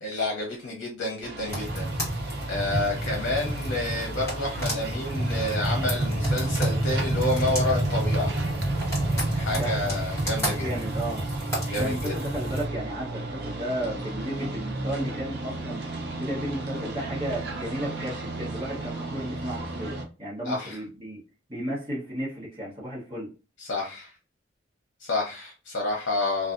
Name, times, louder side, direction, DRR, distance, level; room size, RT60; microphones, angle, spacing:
voice 1, 0.0-1.9 2.1-2.2 2.5-8.3 9.3-10.7 11.7-12.1 20.4-20.8 23.6-24.1 25.0-26.5, left 2 dB, 70° left, -1 dB, 0.7 m, -29 dB
sound 1, 1.2-20.0, right 2 dB, 60° right, 0.6 m, -35 dB
sound 2, 1.5-12.6, right 1 dB, 15° left, 1.4 m, -28 dB
voice 2, 9.5-9.9 10.5-11.3 11.8-15.9 16.2-19.9 20.2-21.2 21.5-23.3, right 1 dB, 25° right, -6 dB, 1.0 m, -33 dB
2.6 x 2.3 x 2.5 m, 0.32 s
head